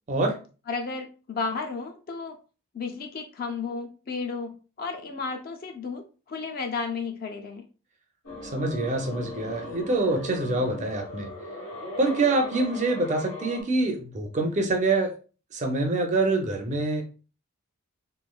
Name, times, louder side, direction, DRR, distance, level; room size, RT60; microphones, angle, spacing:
voice 1, 0.7-2.4 2.7-7.6, left 4 dB, 40° left, 5 dB, 0.4 m, -33 dB
sound 1, 8.2-13.6, left 2 dB, 80° left, 1.4 m, -38 dB
voice 2, 8.4-11.3 12.0-15.1 15.5-17.0, right 2 dB, 30° right, 3 dB, 0.4 m, -25 dB
3.0 x 2.5 x 2.2 m, 0.35 s
head